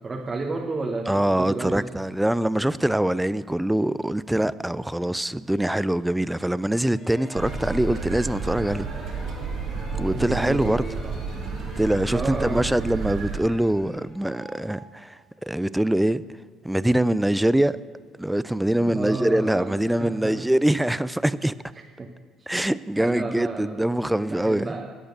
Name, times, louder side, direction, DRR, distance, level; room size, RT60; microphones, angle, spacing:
voice 1, 0.0-1.9 10.0-11.2 12.1-12.6 18.8-20.4 22.0-22.1 23.0-23.9 24.2-24.9, right 3 dB, 30° right, 1.3 m, -31 dB
voice 2, 1.1-8.9 9.9-10.9 11.8-16.2 16.6-17.8 18.2-21.5 22.5-24.8, right 1 dB, 5° right, 0.4 m, -24 dB
sound 1, 6.8-15.5, left 1 dB, 50° left, 4.2 m, -45 dB
sound 2, 7.4-13.4, right 4 dB, 60° right, 1.7 m, -31 dB
11.5 x 8.7 x 6.7 m
supercardioid pair, 70°, 0 cm